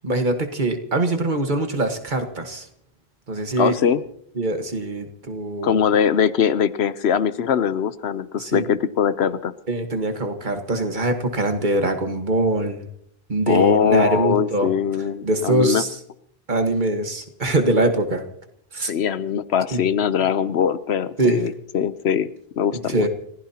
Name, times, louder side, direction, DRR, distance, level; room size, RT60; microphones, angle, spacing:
voice 1, 0.0-2.7 3.3-3.7 4.4-5.8 8.4-8.7 9.7-12.9 13.3-14.7 15.2-15.9 16.5-18.2 18.7-18.9 19.7-19.8 21.2-21.4 22.7-23.1, right 2 dB, 45° right, 5 dB, 1.6 m, -23 dB
voice 2, 3.6-4.0 5.6-9.5 13.5-15.8 18.8-23.1, left 8 dB, 80° left, 14 dB, 1.0 m, -21 dB
29.5 x 15.5 x 2.9 m, 0.71 s
omnidirectional pair, 1.1 m